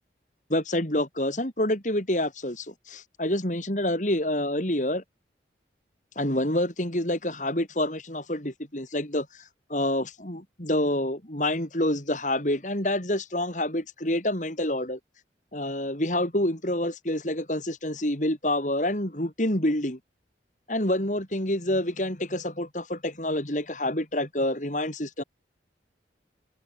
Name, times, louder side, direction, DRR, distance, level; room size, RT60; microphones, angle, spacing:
voice 1, 0.5-5.0 6.2-15.0 15.5-20.0 20.7-25.2, left 1 dB, 45° left, 4.4 m, -27 dB
head